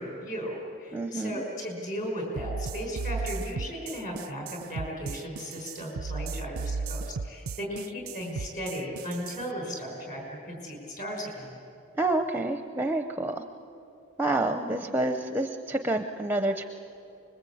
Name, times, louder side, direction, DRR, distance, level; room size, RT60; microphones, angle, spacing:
voice 1, 0.0-11.5, equal, 35° left, 1 dB, 5.6 m, -36 dB
voice 2, 0.9-1.4 12.0-13.4 14.2-16.6, right 2 dB, 10° right, 7 dB, 0.6 m, -28 dB
sound 1, 2.4-9.5, right 4 dB, 75° right, 0.5 m, -35 dB
25.5 x 21.0 x 8.5 m, 2.8 s
head